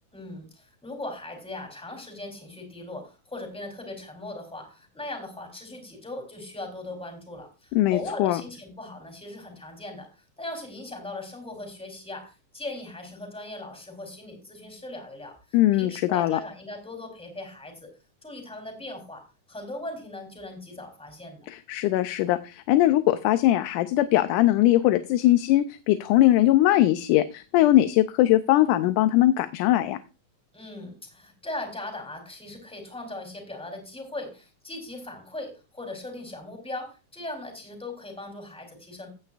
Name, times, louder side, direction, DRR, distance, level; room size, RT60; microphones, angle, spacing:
voice 1, 0.1-10.1 10.4-15.4 15.8-17.9 18.2-21.5 30.5-39.1, left 2 dB, ahead, 3 dB, 3.0 m, -39 dB
voice 2, 7.7-8.4 15.5-16.4 21.5-30.0, left 14 dB, 85° left, 11 dB, 2.1 m, -21 dB
16.5 x 9.1 x 2.4 m, 0.31 s
omnidirectional pair, 3.6 m